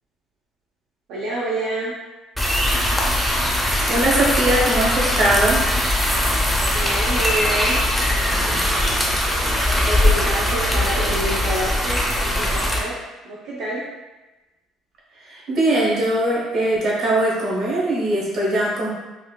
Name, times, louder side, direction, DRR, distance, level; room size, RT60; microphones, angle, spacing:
voice 1, 1.1-2.0 6.7-8.6 9.7-13.0 13.2-13.9, right 1 dB, 80° right, -6 dB, 0.6 m, -28 dB
sound 1, 2.4-12.8, left 1 dB, ahead, 0.4 m, -20 dB
voice 2, 3.9-5.6 15.2-18.9, right 1 dB, 55° right, -5 dB, 1.0 m, -20 dB
4.2 x 2.3 x 2.2 m, 1.1 s
cardioid pair, 155°, 0 cm